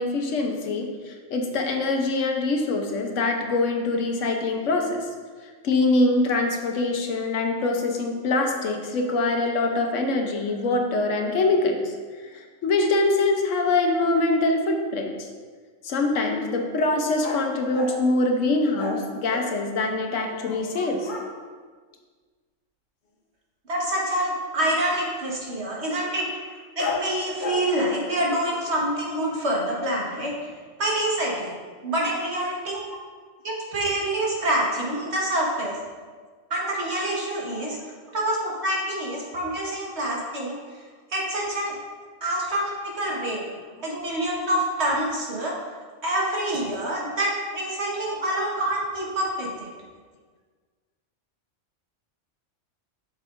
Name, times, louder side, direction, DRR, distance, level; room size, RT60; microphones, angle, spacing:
voice 1, 0.0-5.0 5.6-11.8 12.6-15.1 15.8-21.1, left 2 dB, 75° left, 3 dB, 1.2 m, -24 dB
sound 1, 17.2-18.1 18.8-21.3 26.8-28.7, left 3 dB, 45° left, 0.8 m, -34 dB
voice 2, 23.7-30.3 30.8-31.5 31.8-32.8 33.4-35.7 36.5-37.8 38.1-40.5 41.1-41.7 42.2-43.4 43.8-45.5 46.0-49.7, right 1 dB, 60° right, -3 dB, 1.7 m, -26 dB
8.4 x 6.6 x 2.6 m, 1.5 s
omnidirectional pair, 1.3 m